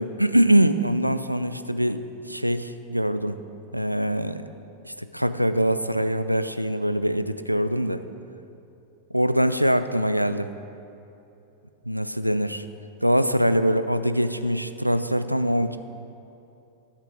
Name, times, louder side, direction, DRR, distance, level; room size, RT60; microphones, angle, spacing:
voice 1, 0.0-3.3 3.7-4.5 4.8-8.0 9.1-10.5 11.9-12.6 13.0-15.8, equal, 90° right, 11 dB, 0.4 m, -23 dB
11.5 x 8.2 x 4.8 m, 2.8 s
figure-of-eight pair, 90°, 0 cm